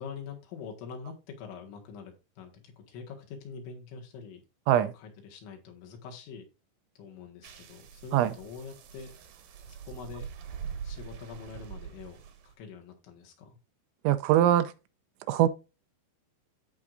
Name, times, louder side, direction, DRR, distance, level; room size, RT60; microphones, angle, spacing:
voice 1, 0.0-4.4 4.7-6.5 7.0-9.1 9.7-10.3 10.8-12.2 12.5-13.6, left 6 dB, 75° left, 4.0 m, -44 dB
sound 1, 7.4-12.5, right 7 dB, 65° right, 2.3 m, -43 dB
voice 2, 14.0-14.7 15.3-15.5, right 12 dB, 85° right, 2.9 m, -22 dB
14.0 x 4.7 x 2.5 m
omnidirectional pair, 5.4 m